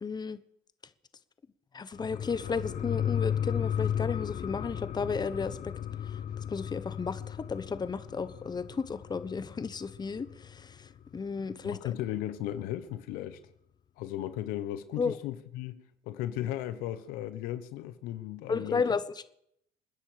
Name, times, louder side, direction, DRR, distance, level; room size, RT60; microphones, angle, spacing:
voice 1, 0.0-0.4 1.7-5.7 6.5-10.8 11.1-11.8 15.0-15.2 18.5-19.0, left 5 dB, 25° left, 1.1 m, -33 dB
sound 1, 1.9-11.0 11.4-11.5, left 9 dB, 50° left, 1.1 m, -35 dB
voice 2, 11.4-13.4 14.0-18.9, left 13 dB, 75° left, 1.1 m, -36 dB
28.0 x 10.0 x 5.1 m
hypercardioid pair, 70°, 15 cm